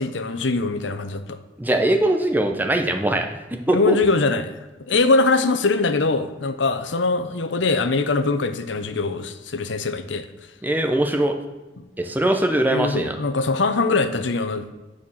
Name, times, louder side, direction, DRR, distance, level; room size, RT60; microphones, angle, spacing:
voice 1, 0.0-1.4 3.7-4.5 4.9-10.3 12.7-14.7, left 3 dB, 80° left, 10 dB, 0.8 m, -22 dB
voice 2, 1.6-3.3 3.7-4.0 10.6-11.3 12.0-13.2, right 1 dB, 10° right, 5 dB, 0.7 m, -21 dB
8.8 x 4.3 x 7.2 m, 1.1 s
head